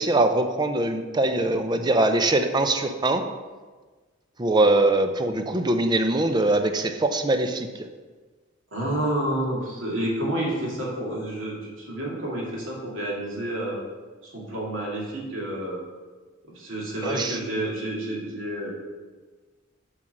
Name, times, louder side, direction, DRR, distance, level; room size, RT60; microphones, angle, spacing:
voice 1, 0.0-3.2 4.4-7.9 17.0-17.4, right 2 dB, 20° right, 7 dB, 0.5 m, -22 dB
voice 2, 8.7-13.8 14.2-15.8 16.5-18.7, right 1 dB, 75° right, -4 dB, 2.4 m, -29 dB
7.3 x 4.5 x 6.4 m, 1.3 s
head